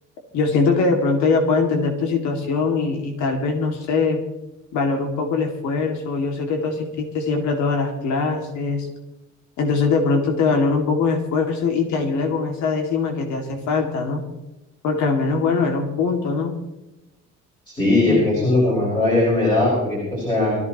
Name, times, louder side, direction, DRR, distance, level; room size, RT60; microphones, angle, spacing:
voice 1, 0.3-4.2 4.7-8.9 9.6-14.2 14.8-16.5 18.0-18.3, left 4 dB, 65° left, 2 dB, 2.3 m, -22 dB
voice 2, 17.7-20.5, left 2 dB, 15° left, -5 dB, 5.2 m, -19 dB
23.0 x 14.5 x 3.0 m, 0.98 s
cardioid pair, 180°, 30 cm